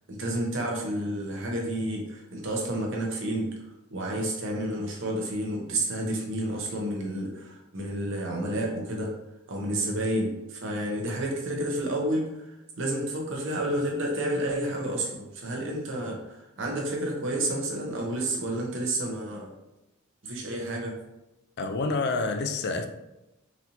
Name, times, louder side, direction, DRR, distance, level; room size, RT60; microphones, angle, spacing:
voice 1, 0.1-3.5 3.9-9.1 9.5-19.5 20.2-21.0, right 1 dB, 60° right, 0.8 m, -30 dB
voice 2, 21.6-22.9, left 3 dB, 50° left, 0.4 m, -28 dB
4.1 x 2.7 x 2.8 m
head